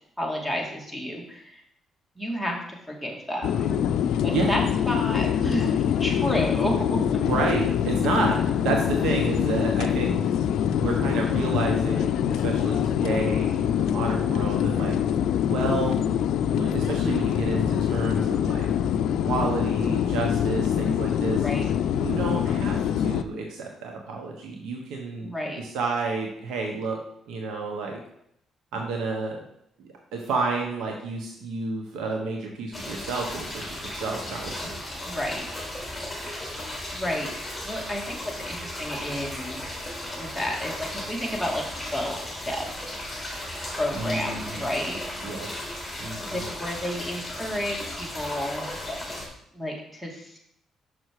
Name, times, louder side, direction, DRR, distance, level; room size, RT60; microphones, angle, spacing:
voice 1, 0.2-1.6 2.2-3.8 4.1-5.7 6.0-7.2 21.4-21.6 25.2-25.6 35.0-35.4 36.2-36.4 36.9-37.3 37.6-39.6 40.2-41.6 41.9-42.7 43.8-45.0 46.2-48.8 49.5-50.4, equal, 5° right, 0 dB, 2.2 m, -31 dB
sound 1, 3.4-23.2, left 9 dB, 80° left, 0.4 m, -24 dB
voice 2, 7.2-10.2 10.8-15.0 15.5-16.0 16.5-18.7 19.2-21.4 22.0-25.3 25.6-27.0 27.3-28.0 28.7-29.4 29.8-34.8 43.9-44.7 45.2-45.7 46.0-46.4, right 3 dB, 85° right, 1 dB, 1.3 m, -30 dB
sound 2, 32.7-49.3, left 1 dB, 10° left, 3.1 m, -35 dB
6.3 x 6.1 x 4.7 m, 0.73 s
cardioid pair, 90°, 0 cm